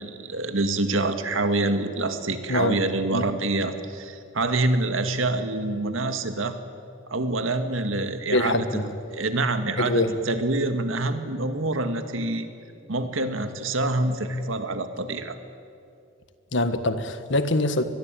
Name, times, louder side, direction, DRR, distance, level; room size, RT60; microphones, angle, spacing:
voice 1, 0.0-6.6 7.1-8.7 9.1-12.5 12.9-15.4, right 2 dB, 90° right, 2.0 m, -26 dB
voice 2, 2.5-2.8 3.1-3.2 8.3-8.9 9.8-10.2 16.5-17.8, left 2 dB, 70° left, 1.6 m, -24 dB
24.5 x 21.0 x 9.1 m
head